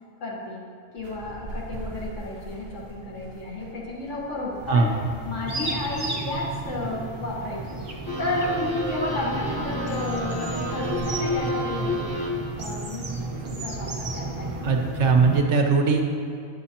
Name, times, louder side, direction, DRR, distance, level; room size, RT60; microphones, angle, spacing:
voice 1, 0.2-0.6 0.9-4.9 5.2-7.7 8.2-12.1 12.5-13.1 13.5-14.6, left 2 dB, 65° left, -4 dB, 1.6 m, -32 dB
sound 1, 1.0-14.8, right 2 dB, 85° left, 2.1 m, -44 dB
sound 2, 4.6-15.4, right 2 dB, 35° right, 0.6 m, -33 dB
voice 2, 4.7-5.0 14.6-16.0, right 4 dB, 65° right, 2 dB, 0.9 m, -20 dB
sound 3, 8.1-12.7, left 1 dB, 20° left, 0.9 m, -30 dB
9.3 x 6.5 x 2.8 m, 2.6 s
omnidirectional pair, 1.4 m